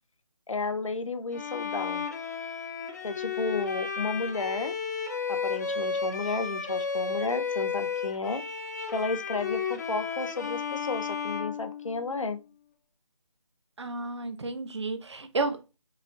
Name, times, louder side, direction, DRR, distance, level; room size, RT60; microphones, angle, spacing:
voice 1, 0.5-2.0 3.0-4.7 5.3-8.4 8.9-12.4, left 3 dB, 65° left, 0.8 m, -32 dB
Bowed string instrument, 1.3-12.3, left 6 dB, 30° left, 0.7 m, -33 dB
voice 2, 13.8-15.8, right 3 dB, 55° right, 0.9 m, -32 dB
4.9 x 4.3 x 2.4 m
figure-of-eight pair, 155°, 18 cm